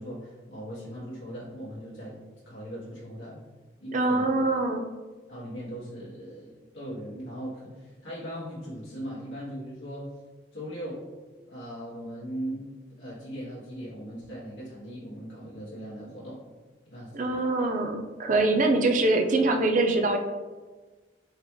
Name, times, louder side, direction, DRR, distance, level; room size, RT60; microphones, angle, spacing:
voice 1, 0.0-2.2 2.4-3.4 3.8-4.2 5.3-10.1 10.5-11.0 11.5-12.7 12.9-16.4 16.9-17.3, equal, 85° left, -9 dB, 1.4 m, -39 dB
voice 2, 3.9-4.8 17.1-20.2, right 2 dB, 45° right, 4 dB, 0.5 m, -24 dB
3.9 x 3.6 x 3.2 m, 1.3 s
head